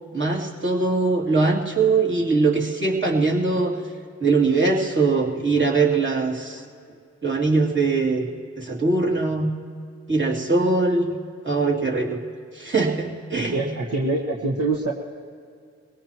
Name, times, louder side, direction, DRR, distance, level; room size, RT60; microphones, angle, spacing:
voice 1, 0.1-3.7 4.2-6.6 7.2-8.3 8.6-9.5 10.1-11.1 11.4-12.2 12.6-13.7, right 3 dB, 35° right, -2 dB, 2.9 m, -21 dB
voice 2, 13.4-14.9, right 2 dB, 55° right, -2 dB, 1.6 m, -25 dB
22.5 x 17.5 x 3.1 m, 2.2 s
supercardioid pair, 45°, 31 cm